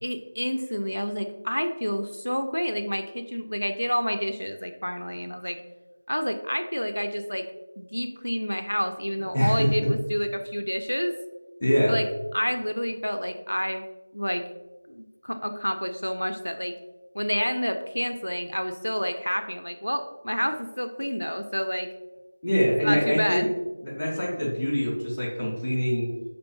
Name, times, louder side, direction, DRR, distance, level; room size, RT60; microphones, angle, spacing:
voice 1, 0.0-5.6 6.1-7.5 7.8-11.1 11.9-12.1 12.3-13.8 14.1-14.4 14.9-16.7 17.1-21.9 22.8-23.5, equal, 80° left, 7 dB, 0.4 m, -29 dB
voice 2, 9.2-9.7 11.6-11.9 22.4-23.4 23.8-26.1, equal, 10° left, -12 dB, 0.8 m, -24 dB
5.0 x 3.1 x 3.1 m, 1.1 s
figure-of-eight pair, 175°, 0 cm